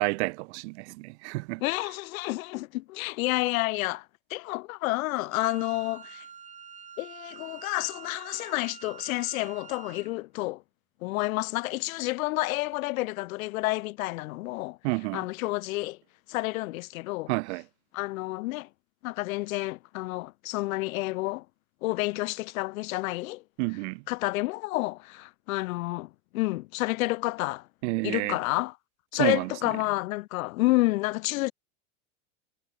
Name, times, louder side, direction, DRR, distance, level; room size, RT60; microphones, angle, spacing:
voice 1, 0.0-1.6 14.8-15.2 17.3-17.6 23.6-24.0 27.8-28.4 29.1-29.5, right 27 dB, 55° right, 1.0 m, -29 dB
voice 2, 1.6-6.2 7.0-10.6 11.0-14.8 15.1-16.0 16.3-17.3 17.9-18.7 19.0-21.4 21.8-23.4 24.1-27.7 28.0-28.8 29.1-31.5, left 20 dB, 80° left, 0.8 m, -30 dB
Wind instrument woodwind instrument, 5.3-10.1, right 6 dB, 15° right, 5.1 m, -47 dB
supercardioid pair, 160°, 41 cm